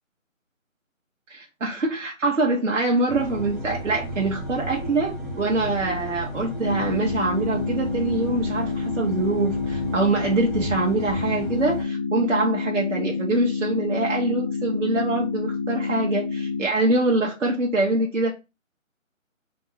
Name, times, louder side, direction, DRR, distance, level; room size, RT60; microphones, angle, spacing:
voice 1, 1.3-18.3, right 2 dB, 65° right, 0.9 m, -24 dB
sound 1, 3.1-11.8, right 1 dB, ahead, 0.5 m, -33 dB
sound 2, 6.6-16.6, left 4 dB, 25° right, 0.9 m, -28 dB
3.4 x 2.0 x 4.0 m
figure-of-eight pair, 170°, 40 cm